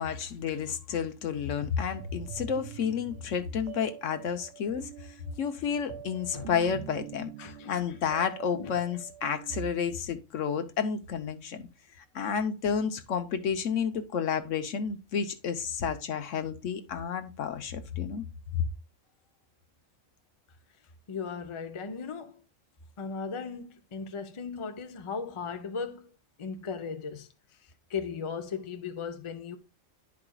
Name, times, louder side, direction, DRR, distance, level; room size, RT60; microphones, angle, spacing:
voice 1, 0.0-4.9 5.4-7.3 7.7-11.7 12.1-18.2, left 7 dB, 70° left, 1.1 m, -31 dB
sound 1, 1.9-9.7, right 12 dB, 65° right, 0.7 m, -45 dB
voice 2, 7.4-7.7 8.5-8.7 21.1-22.4 23.0-26.1 26.4-27.3 27.9-29.6, left 5 dB, 35° left, 0.5 m, -37 dB
11.0 x 4.9 x 2.3 m
omnidirectional pair, 1.4 m